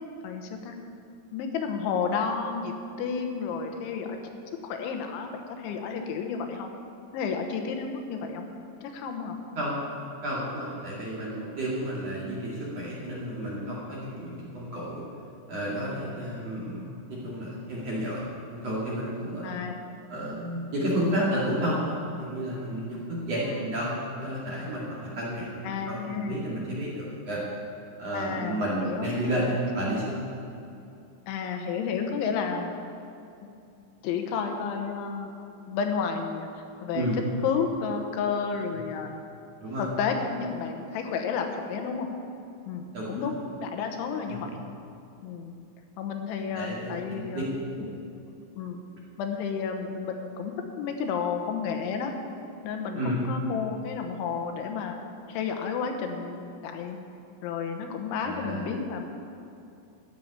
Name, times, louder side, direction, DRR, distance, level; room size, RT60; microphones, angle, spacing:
voice 1, 0.2-0.8 1.3-2.7 3.0-4.2 4.6-6.7 7.1-8.5 8.8-9.4 19.4-19.8 23.4-23.6 25.6-26.4 28.1-29.1 31.3-32.7 33.4-33.5 34.0-35.3 35.7-37.1 37.4-39.1 39.8-42.1 42.7-43.3 43.6-44.6 45.2-45.5 46.0-47.4 48.1-48.8 49.2-52.1 52.6-55.0 55.3-57.0 57.4-59.1, left 6 dB, 80° left, 4 dB, 3.4 m, -31 dB
voice 2, 9.5-15.0 15.5-18.2 18.5-19.6 20.1-27.4 28.0-30.2 36.9-37.2 39.6-39.9 42.9-43.2 44.3-44.4 46.5-47.4 47.7-47.9 53.0-53.3 58.2-58.7, equal, 45° right, -6 dB, 2.7 m, -31 dB
12.5 x 7.2 x 9.6 m, 2.7 s
omnidirectional pair, 5.4 m